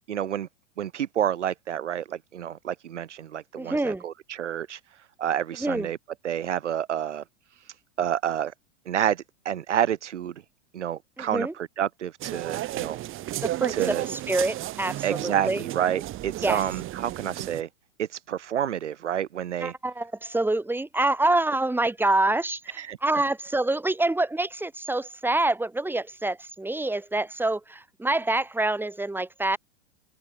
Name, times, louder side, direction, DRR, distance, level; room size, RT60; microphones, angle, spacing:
voice 1, 0.1-0.5 0.8-6.0 6.2-7.2 7.5-8.5 8.8-10.3 10.7-13.0 13.7-14.0 15.0-17.7 18.0-19.7 22.8-23.2, right 10 dB, 65° right, 6.7 m, -29 dB
voice 2, 3.6-4.0 5.6-5.9 11.2-11.5 13.4-15.6 16.4-16.6 19.6-29.6, right 2 dB, 5° right, 4.7 m, -26 dB
sound 1, 12.2-17.6, right 15 dB, 35° right, 5.5 m, -33 dB
figure-of-eight pair, 100°, 37 cm